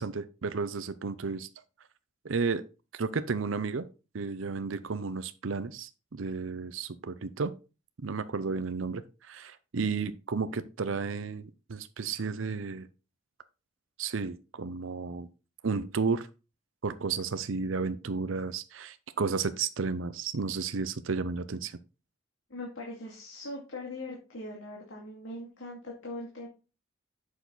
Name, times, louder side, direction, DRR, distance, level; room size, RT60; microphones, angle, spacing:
voice 1, 0.0-1.5 2.2-2.6 2.9-3.9 4.1-7.5 8.0-12.9 14.0-15.3 15.6-16.3 16.8-21.8, right 4 dB, 80° right, 12 dB, 0.6 m, -32 dB
voice 2, 22.5-26.5, left 1 dB, 80° left, -2 dB, 2.4 m, -41 dB
8.2 x 6.5 x 4.0 m, 0.31 s
head